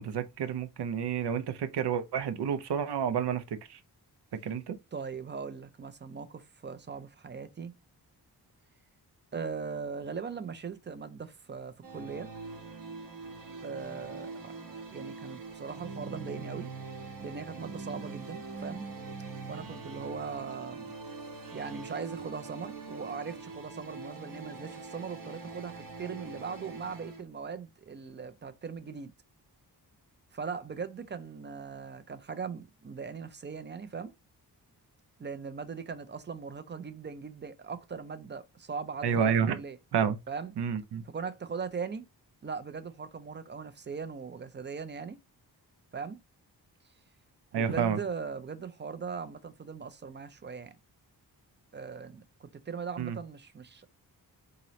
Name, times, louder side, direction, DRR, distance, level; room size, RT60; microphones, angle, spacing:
voice 1, 0.0-3.4 3.7-3.8 4.4-4.8 39.0-39.6 39.9-40.2 40.6-41.0 47.5-48.0 53.0-53.2, right 7 dB, 80° right, 0.6 m, -29 dB
voice 2, 4.9-7.7 9.3-12.3 13.6-14.5 14.9-16.7 17.2-18.8 19.5-21.0 21.5-29.1 30.3-34.1 35.2-39.8 40.3-40.5 41.0-42.1 42.4-45.2 45.9-46.2 47.5-50.7 51.7-53.9, right 5 dB, 30° right, 0.4 m, -39 dB
sound 1, 11.8-27.2, right 4 dB, 55° right, 0.9 m, -43 dB
3.9 x 2.9 x 3.0 m
wide cardioid pair, 145°, 40 cm